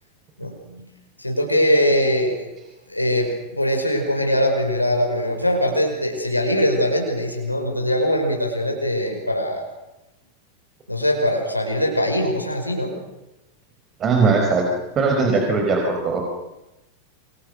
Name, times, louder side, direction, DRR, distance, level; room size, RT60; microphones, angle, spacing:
voice 1, 0.4-0.9 1.2-2.4 2.9-9.6 10.9-12.9, equal, 85° left, 2 dB, 5.5 m, -22 dB
voice 2, 14.0-14.7 15.0-16.3, right 4 dB, 25° right, 2 dB, 5.2 m, -19 dB
29.0 x 27.0 x 6.6 m, 0.97 s
figure-of-eight pair, 90°, 0 cm